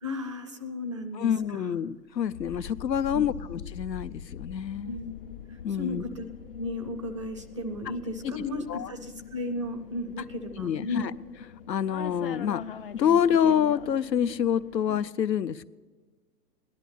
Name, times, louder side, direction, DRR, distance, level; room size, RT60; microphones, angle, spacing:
voice 1, 0.0-1.8 3.1-3.2 4.8-5.1 5.7-6.3 6.6-11.1, left 2 dB, 20° right, 9 dB, 0.4 m, -35 dB
voice 2, 1.1-5.0 5.6-6.0 8.2-8.3 8.7-8.9 10.6-11.1 11.7-12.6 12.9-15.7, left 8 dB, 90° left, 16 dB, 0.7 m, -27 dB
sound 1, 2.3-15.1, left 8 dB, 35° left, 0.5 m, -43 dB
17.0 x 11.0 x 6.7 m, 1.4 s
hypercardioid pair, 135°, 49 cm